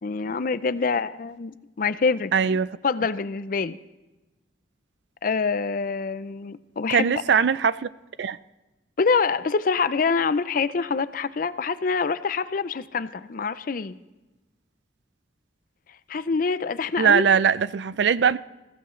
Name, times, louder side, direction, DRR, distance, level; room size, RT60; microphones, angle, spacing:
voice 1, 0.0-2.3 2.8-3.8 5.2-7.1 9.0-14.0 16.1-17.3, left 4 dB, 50° left, 0.5 m, -25 dB
voice 2, 2.3-2.7 6.9-7.9 8.2-8.4 17.0-18.4, right 7 dB, 75° right, 0.4 m, -20 dB
20.5 x 15.0 x 3.2 m
head